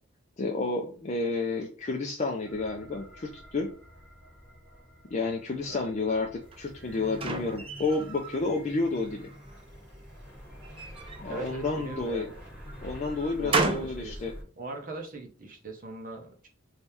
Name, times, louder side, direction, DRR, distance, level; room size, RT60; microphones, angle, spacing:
voice 1, 0.4-3.7 5.1-9.2 11.2-12.3 12.8-14.3, left 3 dB, 35° left, 1 dB, 0.5 m, -30 dB
sound 1, 2.5-14.4, equal, 5° right, 1.9 m, -47 dB
sound 2, 6.5-8.4 8.9-9.6 10.6-12.1 12.7-14.0, right 3 dB, 25° right, 0.5 m, -33 dB
voice 2, 11.3-12.4 13.4-14.2 14.6-16.5, right 3 dB, 45° right, 2 dB, 0.9 m, -41 dB
3.2 x 2.8 x 3.4 m, 0.41 s
head